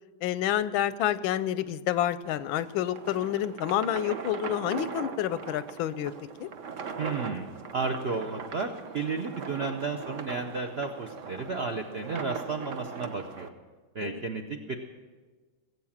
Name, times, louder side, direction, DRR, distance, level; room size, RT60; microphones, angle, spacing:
voice 1, 0.2-6.1 6.4-6.5 14.0-14.2, left 11 dB, 90° left, 16 dB, 1.4 m, -29 dB
sound 1, 2.2-13.5, right 6 dB, 50° right, 1.0 m, -40 dB
voice 2, 7.0-7.5 7.7-13.5 13.9-14.8, right 4 dB, 70° right, 4 dB, 0.5 m, -33 dB
19.0 x 8.1 x 7.3 m, 1.4 s
omnidirectional pair, 2.1 m